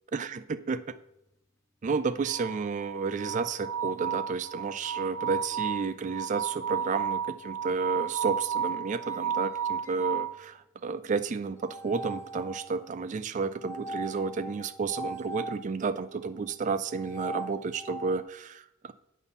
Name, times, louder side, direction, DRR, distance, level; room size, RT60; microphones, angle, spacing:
voice 1, 0.1-0.8 1.8-18.9, right 4 dB, 35° right, 11 dB, 0.3 m, -31 dB
sound 1, 2.2-10.4 11.6-12.9 13.6-15.6 16.8-18.2, right 7 dB, 15° left, 0.8 m, -34 dB
8.4 x 4.1 x 5.3 m, 0.83 s
head